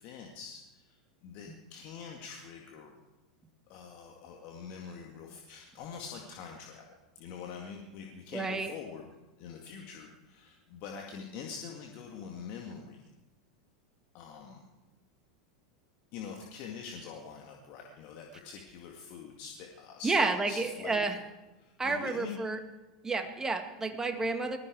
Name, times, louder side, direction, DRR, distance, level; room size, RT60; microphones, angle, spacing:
voice 1, 0.0-3.0 3.7-6.8 7.2-9.1 9.4-13.1 14.1-14.6 16.1-21.1 21.6-22.4, left 6 dB, 50° left, 1 dB, 2.1 m, -45 dB
voice 2, 8.3-8.7 20.0-21.2 21.8-22.6 23.0-24.6, right 3 dB, 15° right, 7 dB, 2.0 m, -30 dB
19.5 x 14.0 x 4.8 m, 1.1 s
hypercardioid pair, 90°, 3 cm